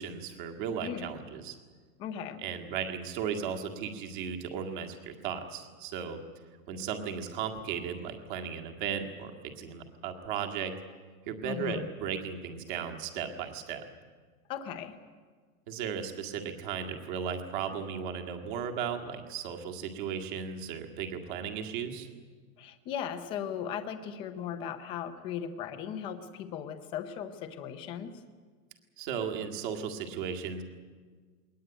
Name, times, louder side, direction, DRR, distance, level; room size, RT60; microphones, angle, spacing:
voice 1, 0.0-1.6 2.4-6.2 6.7-10.7 11.3-13.8 15.7-22.1 29.0-30.6, right 7 dB, 35° right, 5 dB, 2.0 m, -36 dB
voice 2, 2.0-2.4 11.4-11.9 14.5-15.0 22.6-28.2, left 8 dB, 10° left, 8 dB, 0.6 m, -37 dB
21.0 x 19.5 x 9.0 m, 1.5 s
supercardioid pair, 175°, 44 cm